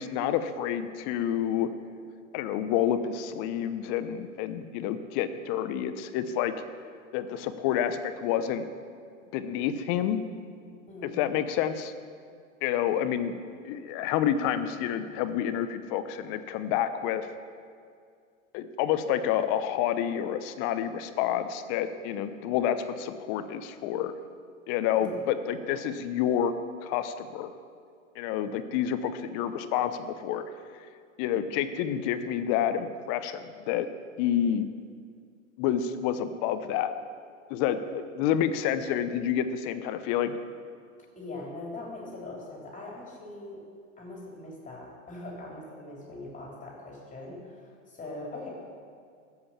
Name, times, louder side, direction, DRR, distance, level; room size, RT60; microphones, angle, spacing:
voice 1, 0.0-1.7 2.3-6.5 7.1-8.6 9.3-10.2 11.0-11.9 12.6-13.3 13.6-17.3 18.5-24.1 24.7-26.5 26.8-27.5 28.2-30.4 31.2-33.9 34.2-34.7 35.6-36.9 37.5-40.4, left 9 dB, 45° left, 11 dB, 0.9 m, -29 dB
voice 2, 10.9-11.2 25.0-25.2 41.2-43.6 44.0-48.5, left 2 dB, 20° left, -3 dB, 3.5 m, -41 dB
13.0 x 7.8 x 7.2 m, 2.2 s
hypercardioid pair, 105°, 40 cm